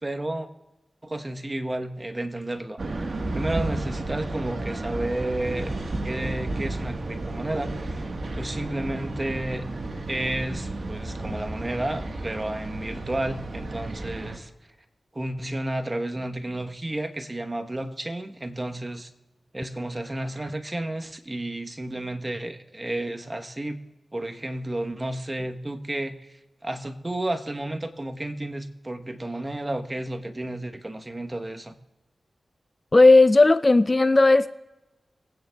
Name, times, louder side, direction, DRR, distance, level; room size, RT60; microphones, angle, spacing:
voice 1, 0.0-0.5 1.0-2.8 3.3-5.7 6.0-9.7 10.1-14.5 15.1-19.1 19.5-23.8 24.1-26.2 26.6-31.7, right 1 dB, 30° right, 6 dB, 1.0 m, -31 dB
sound 1, 2.8-14.4, right 2 dB, 60° right, 1.3 m, -32 dB
voice 2, 32.9-34.5, left 2 dB, 35° left, 14 dB, 0.4 m, -15 dB
21.5 x 9.1 x 2.3 m, 1.0 s
cardioid pair, 40°, 0 cm